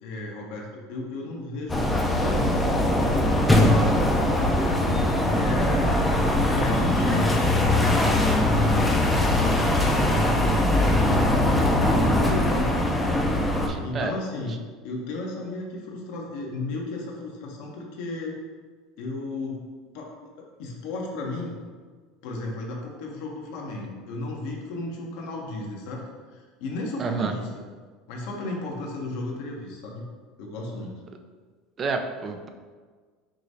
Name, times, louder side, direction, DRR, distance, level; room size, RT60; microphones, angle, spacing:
voice 1, 0.0-1.8 2.2-3.8 4.4-4.7 5.2-12.8 13.1-14.5 14.8-18.3 19.0-19.7 19.9-21.6 22.2-26.0 26.3-27.5 28.1-30.0 30.4-31.0, left 2 dB, 70° left, -1 dB, 0.8 m, -34 dB
sound 1, 1.7-13.7, left 1 dB, 10° left, 0.6 m, -21 dB
voice 2, 13.7-14.1 27.0-27.3 31.8-32.5, right 4 dB, 35° right, 5 dB, 0.5 m, -29 dB
4.9 x 3.0 x 2.7 m, 1.5 s
hypercardioid pair, 80°, 0 cm